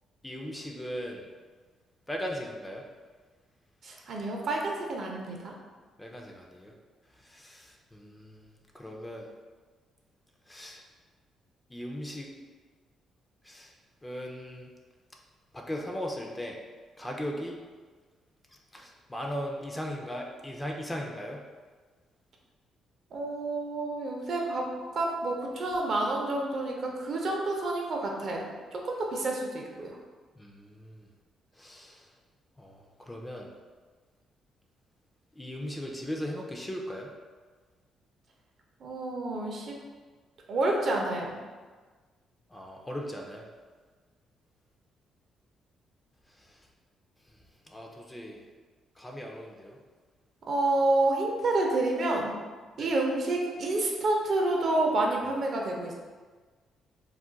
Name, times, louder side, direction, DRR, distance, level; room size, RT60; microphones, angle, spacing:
voice 1, 0.2-1.2 2.1-2.8 6.0-6.7 7.2-9.3 10.5-10.8 11.7-12.3 13.4-13.7 14.0-14.7 15.5-16.6 17.0-17.6 18.7-21.4 30.4-31.1 31.6-32.1 32.6-33.5 35.4-37.1 42.5-43.5 46.4-46.5 47.7-48.4 49.0-49.8 52.8-52.9, equal, 15° left, 0 dB, 0.4 m, -38 dB
voice 2, 3.8-5.5 23.1-24.7 24.9-28.5 28.7-30.0 38.8-39.8 40.5-41.4 50.5-52.4 52.8-55.9, right 2 dB, 55° right, 0 dB, 0.5 m, -29 dB
2.4 x 2.1 x 3.8 m, 1.4 s
cardioid pair, 90°, 0 cm